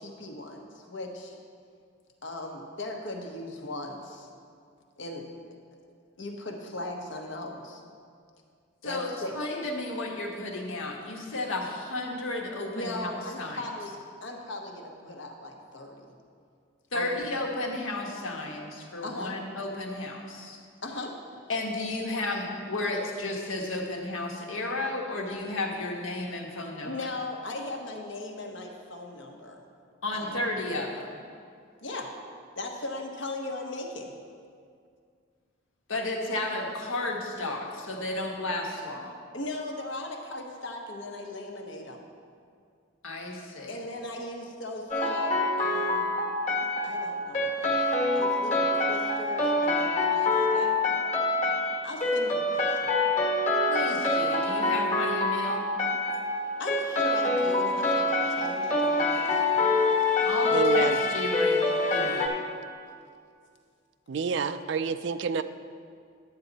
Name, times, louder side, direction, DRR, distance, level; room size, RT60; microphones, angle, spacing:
voice 1, 0.0-1.4 2.2-4.3 5.0-5.3 6.2-7.8 8.8-9.3 12.7-16.1 16.9-17.3 19.0-19.4 20.8-21.1 22.3-22.5 26.8-29.6 30.1-30.4 31.8-32.1 32.6-34.1 39.3-42.0 43.7-46.1 46.8-47.8 48.1-50.7 51.8-53.0 56.6-59.7 62.9-63.0, left 2 dB, 65° left, 2 dB, 1.1 m, -38 dB
voice 2, 8.8-13.1 13.4-13.6 16.9-20.6 21.5-26.9 30.0-31.2 35.9-39.1 43.0-43.8 53.7-55.7 60.2-62.3, left 2 dB, 80° left, 0 dB, 1.4 m, -33 dB
sound 1, 44.9-62.3, left 2 dB, 35° left, 1.4 m, -26 dB
voice 3, 60.5-61.0 64.1-65.4, right 6 dB, 60° right, 12 dB, 0.4 m, -28 dB
11.0 x 8.4 x 4.0 m, 2.2 s
head